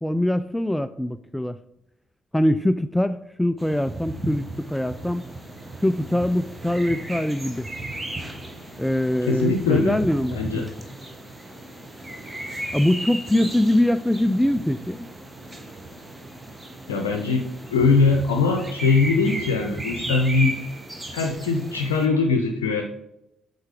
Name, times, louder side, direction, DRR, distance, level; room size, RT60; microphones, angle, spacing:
voice 1, 0.0-1.6 2.3-5.2 5.8-7.7 8.8-10.7 12.7-15.1, left 1 dB, 5° left, 0.3 m, -23 dB
sound 1, 3.6-22.1, right 1 dB, 15° right, 1.4 m, -35 dB
voice 2, 9.3-10.0 10.3-10.7 16.9-20.6 21.1-22.8, left 4 dB, 75° left, 0.6 m, -21 dB
7.9 x 4.3 x 5.0 m
figure-of-eight pair, 45°, 0 cm